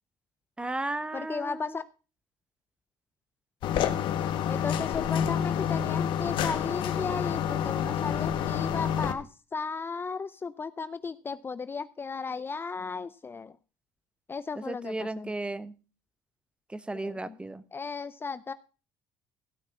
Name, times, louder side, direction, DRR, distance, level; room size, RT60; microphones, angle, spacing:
voice 1, 0.6-1.8 14.7-15.7 16.7-17.6, right 2 dB, 10° right, 15 dB, 0.9 m, -34 dB
voice 2, 1.1-1.8 4.5-13.5 14.3-15.3 17.0-17.4 17.7-18.5, left 4 dB, 25° left, 15 dB, 0.5 m, -35 dB
sound 1, 3.6-9.1, left 9 dB, 65° left, 1.4 m, -28 dB
16.0 x 6.0 x 5.8 m, 0.34 s
supercardioid pair, 90°, 9 cm